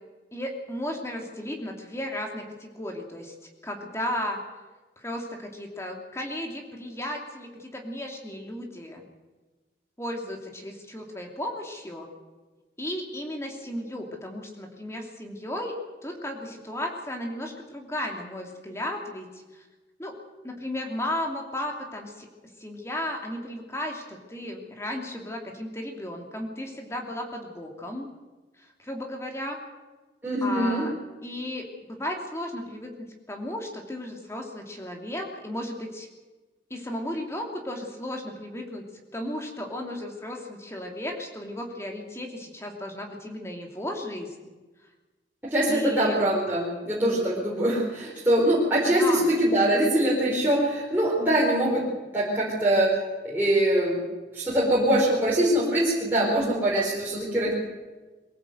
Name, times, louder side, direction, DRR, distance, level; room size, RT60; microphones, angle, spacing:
voice 1, 0.3-3.3 3.6-4.4 5.0-9.0 10.0-12.1 12.8-19.3 20.0-20.2 20.4-22.3 22.6-28.1 28.8-29.6 30.4-30.9 31.2-32.9 33.3-36.1 36.7-38.8 39.1-44.3 45.7-46.2 48.9-49.3, left 1 dB, 15° left, 2 dB, 2.9 m, -34 dB
voice 2, 30.2-30.9 45.5-51.8 52.1-52.9 53.2-54.0 54.3-57.5, right 1 dB, 10° right, -7 dB, 4.4 m, -23 dB
23.0 x 15.5 x 8.0 m, 1.2 s
head